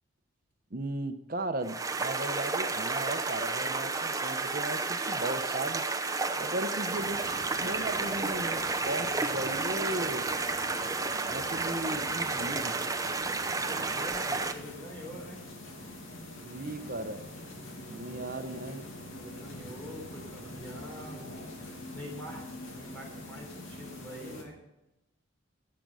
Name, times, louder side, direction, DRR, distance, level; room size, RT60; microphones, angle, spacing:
voice 1, 0.7-5.8 6.4-10.3 11.3-12.8 16.4-17.3 17.9-18.8, right 1 dB, 45° right, 8 dB, 1.0 m, -36 dB
sound 1, 1.6-14.5, right 3 dB, 15° right, 0.8 m, -31 dB
sound 2, 6.9-24.4, left 1 dB, 85° left, 2.5 m, -44 dB
voice 2, 13.6-15.4 17.9-18.3 19.1-24.6, equal, 10° left, -1 dB, 3.7 m, -45 dB
15.5 x 7.8 x 5.5 m, 0.93 s
head